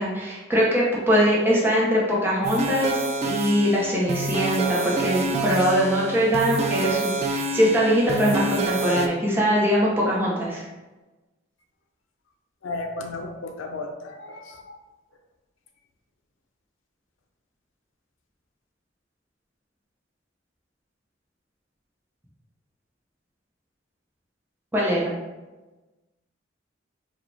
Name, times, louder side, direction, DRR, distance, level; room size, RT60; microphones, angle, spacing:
voice 1, 0.0-10.6 24.7-25.1, equal, 10° right, -6 dB, 0.7 m, -22 dB
sound 1, 2.4-9.1, right 2 dB, 35° right, 0.3 m, -27 dB
voice 2, 12.6-14.8, left 2 dB, 90° left, 3 dB, 0.6 m, -34 dB
5.0 x 2.2 x 3.2 m, 1.1 s
head